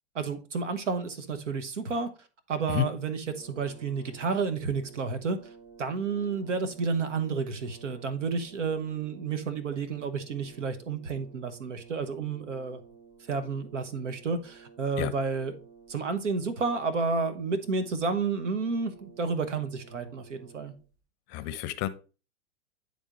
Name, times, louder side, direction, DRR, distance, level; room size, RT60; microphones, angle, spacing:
voice 1, 0.1-2.1 2.5-5.4 5.8-12.8 13.3-15.5 15.9-20.7, right 4 dB, 90° right, 1.2 m, -31 dB
Brass instrument, 3.2-21.0, right 5 dB, 70° right, 3.5 m, -53 dB
voice 2, 21.3-21.9, left 15 dB, 30° left, 0.5 m, -29 dB
9.6 x 3.6 x 3.8 m
hypercardioid pair, 125°, 35 cm